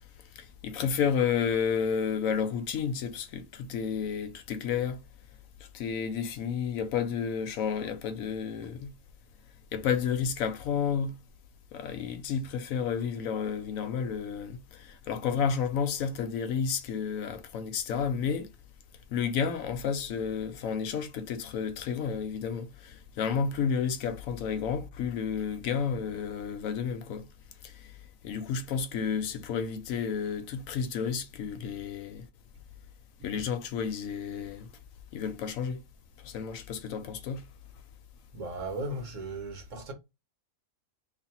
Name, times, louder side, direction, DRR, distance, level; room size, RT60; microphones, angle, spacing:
voice 1, 0.4-5.0 5.7-8.9 9.7-11.2 11.7-18.5 19.1-27.2 27.6-27.7 28.2-32.3 33.2-34.7 35.1-35.8 36.2-37.4, left 7 dB, 75° left, 1.0 m, -31 dB
voice 2, 38.3-39.9, right 2 dB, 60° right, 1.4 m, -36 dB
3.3 x 2.3 x 4.2 m
omnidirectional pair, 1.5 m